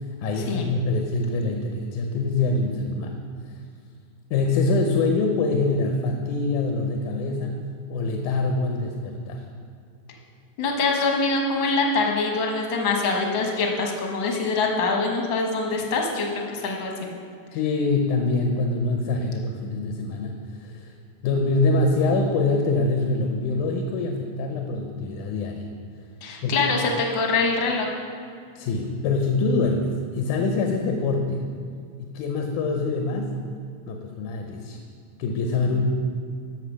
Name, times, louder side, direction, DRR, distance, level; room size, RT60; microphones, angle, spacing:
voice 1, 0.2-3.2 4.3-7.5 7.9-9.4 17.5-20.9 21.2-25.7 26.4-26.7 28.6-31.4 32.0-33.3 33.9-34.8 35.2-35.8, left 3 dB, 90° left, 3 dB, 2.3 m, -24 dB
voice 2, 10.6-16.9 26.2-27.9, left 3 dB, 55° left, 1 dB, 1.5 m, -24 dB
13.0 x 5.1 x 6.3 m, 2.2 s
omnidirectional pair, 3.4 m